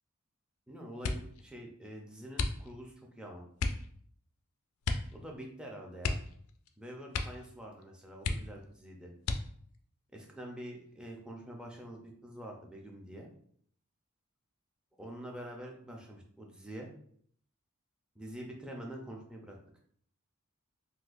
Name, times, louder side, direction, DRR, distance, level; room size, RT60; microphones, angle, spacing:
voice 1, 0.7-3.4 5.1-6.2 6.8-9.1 10.1-13.3 15.0-16.9 18.2-19.6, right 1 dB, 5° right, -1 dB, 0.5 m, -46 dB
sound 1, 1.0-1.4 2.3-3.0 3.6-3.9 4.8-5.2 5.4-5.5 6.0-6.7 7.1-7.5 7.8-7.9 8.2-8.7 9.2-9.8 10.5-11.1 11.5-11.9, left 3 dB, 80° left, 0.4 m, -34 dB
3.9 x 2.6 x 2.5 m, 0.62 s
head